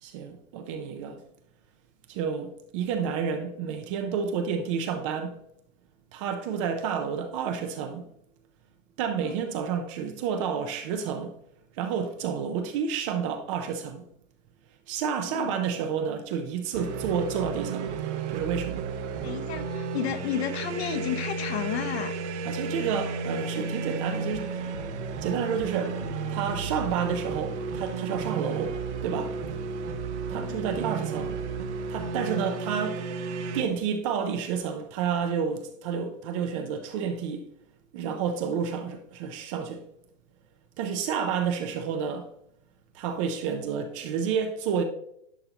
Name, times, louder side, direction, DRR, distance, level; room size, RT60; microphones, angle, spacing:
voice 1, 0.0-1.2 2.1-5.4 6.1-8.1 9.0-11.4 11.7-14.1 14.9-17.9 18.3-18.9 22.4-24.5 25.2-29.4 30.3-31.4 31.9-33.1 33.5-37.5 37.9-39.8 40.8-42.3 42.9-44.8, right 7 dB, 25° right, 0.5 m, -30 dB
sound 1, 16.7-33.6, right 4 dB, 60° right, 1.1 m, -33 dB
voice 2, 19.2-22.1 30.3-30.6 41.1-41.3, left 9 dB, 55° left, 1.0 m, -32 dB
11.0 x 5.6 x 2.8 m
hypercardioid pair, 145°, 39 cm